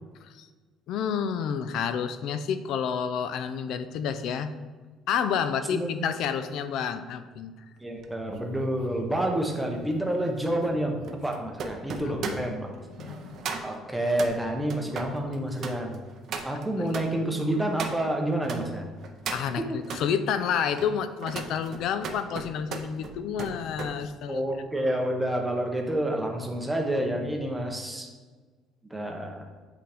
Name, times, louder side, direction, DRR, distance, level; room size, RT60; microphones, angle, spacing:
voice 1, 0.9-4.5 5.1-7.5 12.0-12.6 12.9-13.5 16.8-16.9 17.2-17.3 19.3-24.4, left 7 dB, 55° left, 11 dB, 0.4 m, -30 dB
voice 2, 7.8-12.7 13.6-16.0 16.4-18.9 24.3-28.1 28.8-29.4, right 1 dB, 5° right, 2 dB, 0.7 m, -29 dB
sound 1, 8.0-18.6 19.0-20.1 20.6-24.0 24.3-24.6, right 5 dB, 40° right, 0.5 m, -38 dB
8.3 x 3.8 x 3.4 m, 1.4 s
cardioid pair, 175°, 0 cm